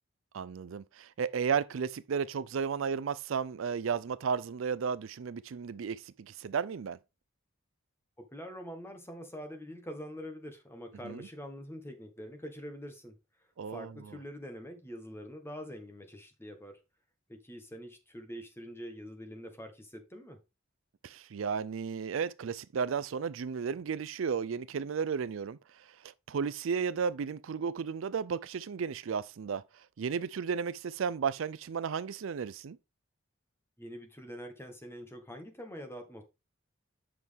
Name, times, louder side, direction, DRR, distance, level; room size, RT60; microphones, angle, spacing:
voice 1, 0.3-7.0 11.0-11.3 13.6-14.2 21.0-32.8, right 6 dB, 70° right, 0.4 m, -34 dB
voice 2, 8.2-13.1 13.7-16.8 17.3-20.4 33.8-36.2, equal, 10° left, 1.6 m, -45 dB
7.8 x 6.2 x 3.5 m
head